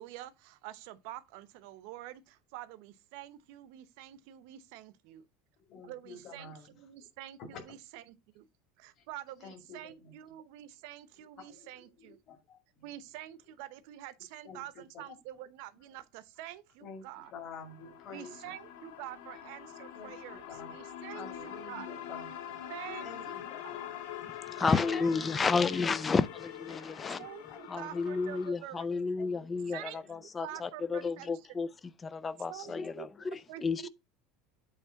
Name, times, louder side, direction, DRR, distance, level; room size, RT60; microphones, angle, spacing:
voice 1, 0.0-5.3 5.8-8.0 8.3-8.5 8.8-12.2 12.8-17.3 18.1-20.4 20.7-21.9 22.7-23.4 23.6-23.7 24.6-24.8 25.3-25.7 27.2-28.9 29.7-31.6 32.5-33.1 33.5-33.9, right 13 dB, 55° right, 0.8 m, -47 dB
voice 2, 5.6-6.7 7.5-7.6 9.0-9.1 9.4-10.1 11.2-12.9 14.4-14.6 14.9-15.1 16.8-18.6 19.9-24.0 24.8-25.0 27.0-27.2 27.5-28.2 29.2-30.2 30.5-31.1 32.6-33.4, left 5 dB, 30° left, 2.2 m, -50 dB
sound 1, 17.2-28.5, left 10 dB, 85° left, 1.8 m, -44 dB
voice 3, 24.5-27.2 27.7-31.7 32.0-33.1 33.6-33.9, left 4 dB, 15° left, 0.4 m, -31 dB
8.4 x 3.3 x 5.7 m
cardioid pair, 175°, 0 cm